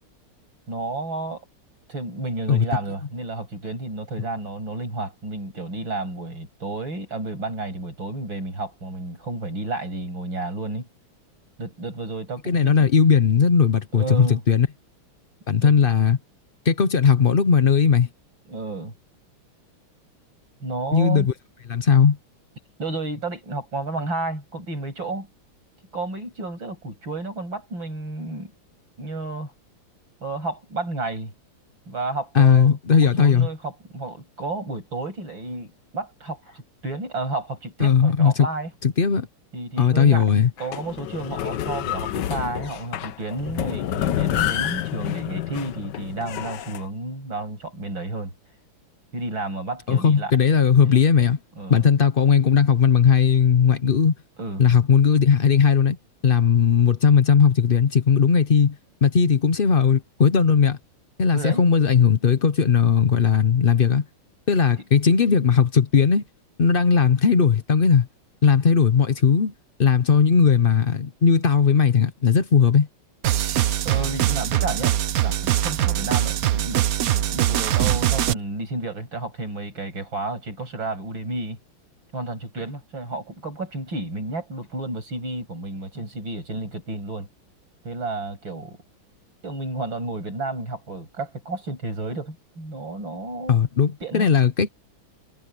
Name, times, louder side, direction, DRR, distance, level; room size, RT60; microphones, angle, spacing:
voice 1, 0.7-1.4 1.9-10.9 11.6-12.8 13.9-14.4 15.6-15.9 18.5-18.9 20.6-21.3 22.8-25.3 25.9-28.5 29.0-29.5 30.2-31.3 31.9-38.7 39.5-40.3 40.6-48.3 49.1-50.3 50.8-51.0 51.5-51.9 54.4-54.7 61.3-61.6 73.8-75.0 75.2-81.6 82.1-87.3 87.8-88.8 89.4-93.6 94.0-94.3, right 2 dB, 60° right, 8.1 m, -31 dB
voice 2, 12.5-14.7 15.5-16.2 16.6-18.1 20.9-21.3 21.7-22.2 32.3-33.5 37.8-38.5 38.8-39.3 39.8-40.5 49.9-51.4 51.7-54.1 54.6-56.0 56.2-58.7 59.0-60.8 61.2-64.0 64.5-66.2 66.6-68.1 68.4-69.5 69.8-72.9 93.5-94.7, left 6 dB, 85° left, 0.4 m, -18 dB
sound 1, 40.6-46.8, left 12 dB, 65° left, 1.3 m, -28 dB
sound 2, 73.2-78.3, right 12 dB, 80° right, 0.8 m, -22 dB
omnidirectional pair, 2.4 m